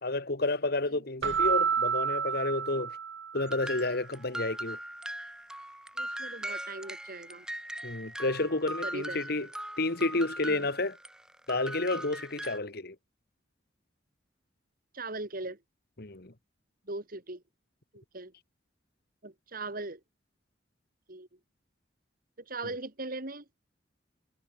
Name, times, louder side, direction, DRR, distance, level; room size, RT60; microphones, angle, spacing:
voice 1, 0.0-2.9 3.3-4.8 7.8-9.5 9.8-10.9 11.5-13.0 16.0-16.3, left 2 dB, 55° left, 2.0 m, -30 dB
Keyboard (musical), 1.2-3.6, right 7 dB, 85° right, 0.8 m, -29 dB
sound 1, 3.3-12.6, right 1 dB, 5° right, 3.6 m, -40 dB
voice 2, 5.9-7.5 8.8-9.2 10.5-10.7 14.9-15.6 16.9-17.4 17.9-18.3 19.2-20.0 21.1-21.3 22.5-23.4, right 2 dB, 50° right, 3.0 m, -39 dB
head